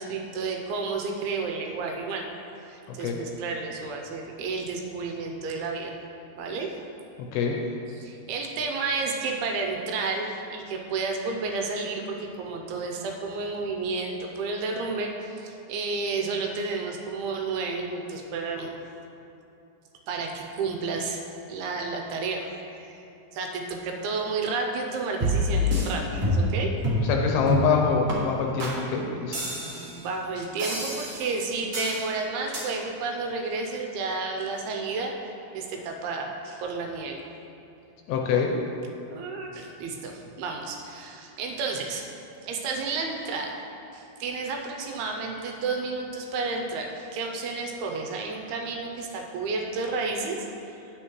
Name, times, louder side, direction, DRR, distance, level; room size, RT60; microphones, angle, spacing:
voice 1, 0.0-2.3 2.7-6.0 6.4-6.7 8.0-18.7 20.1-22.6 22.8-23.0 23.3-26.8 29.6-35.1 35.5-37.2 39.1-42.1 42.4-43.6 43.9-50.4, right 4 dB, 85° right, 1 dB, 2.6 m, -31 dB
sound 1, 25.2-25.9 26.2-26.6 26.8-27.1 27.5-27.7 28.1-28.2 28.6-28.8 29.3-30.0 30.6-31.3 31.7-32.0 32.5-32.6, equal, 65° right, 1.0 m, -27 dB
voice 2, 27.1-29.3 38.1-38.5, left 6 dB, 80° left, 1 dB, 2.4 m, -25 dB
9.7 x 8.1 x 3.1 m, 2.7 s
omnidirectional pair, 4.6 m